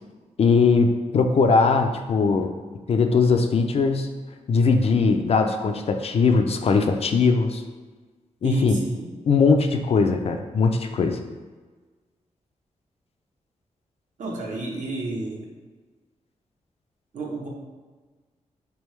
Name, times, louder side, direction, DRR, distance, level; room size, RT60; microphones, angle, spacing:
voice 1, 0.4-2.5 2.9-4.1 4.5-7.6 8.4-8.8 9.3-11.2, left 4 dB, 50° left, 5 dB, 0.4 m, -20 dB
voice 2, 8.4-9.1 14.2-15.5 17.1-17.5, right 2 dB, 70° right, -2 dB, 0.8 m, -31 dB
3.6 x 3.4 x 3.1 m, 1.4 s
wide cardioid pair, 100°, 13 cm